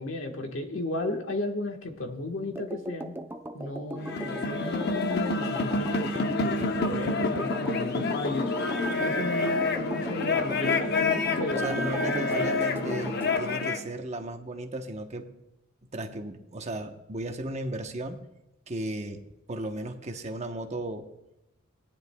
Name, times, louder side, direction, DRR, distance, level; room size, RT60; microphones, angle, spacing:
voice 1, 0.0-3.2 3.5-8.5 8.9-11.7 12.3-12.5, left 2 dB, 75° left, 3 dB, 1.4 m, -34 dB
sound 1, 2.5-13.3, right 1 dB, 10° right, 0.6 m, -39 dB
sound 2, 4.0-13.8, left 3 dB, 55° left, 0.8 m, -28 dB
voice 2, 11.6-15.3 15.9-18.2 18.7-19.2 19.5-21.1, right 1 dB, 35° right, 5 dB, 1.0 m, -35 dB
18.0 x 10.5 x 2.3 m, 0.88 s
head